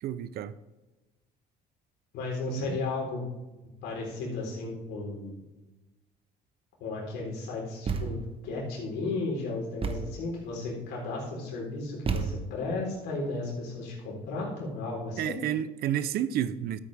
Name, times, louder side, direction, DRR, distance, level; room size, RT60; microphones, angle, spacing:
voice 1, 0.0-0.5 2.5-2.8 15.2-16.8, right 10 dB, 70° right, 0.6 m, -30 dB
voice 2, 2.1-3.2 3.8-5.4 6.8-15.4, left 3 dB, 85° left, 4.1 m, -34 dB
Thump thud, 7.9-8.4 9.8-10.3 12.1-12.7, right 5 dB, 35° right, 1.0 m, -32 dB
12.5 x 8.7 x 3.5 m
cardioid pair, 110°, 17 cm